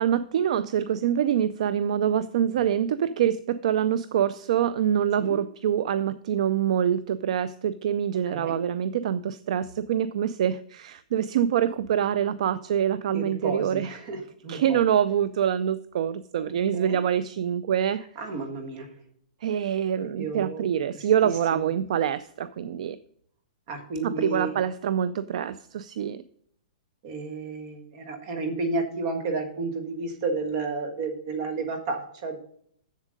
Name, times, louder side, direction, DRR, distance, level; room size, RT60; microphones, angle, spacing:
voice 1, 0.0-14.0 14.5-18.0 19.4-23.0 24.0-26.2, right 9 dB, 55° right, 16 dB, 0.3 m, -25 dB
voice 2, 13.1-14.8 16.4-17.0 18.2-18.9 20.0-20.6 20.9-21.0 21.5-21.6 23.7-24.6 27.0-32.4, right 3 dB, 35° right, 5 dB, 1.5 m, -32 dB
7.3 x 7.2 x 5.2 m, 0.65 s
hypercardioid pair, 170°, 4 cm